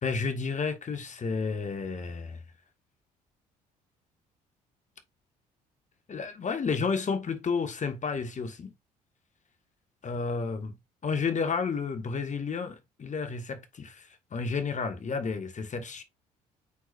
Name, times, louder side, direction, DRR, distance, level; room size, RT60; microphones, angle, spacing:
voice 1, 0.0-2.4 6.1-8.7 10.0-10.8 11.0-16.0, left 5 dB, 40° left, 1.4 m, -31 dB
8.5 x 4.6 x 2.5 m
hypercardioid pair, 50°, 20 cm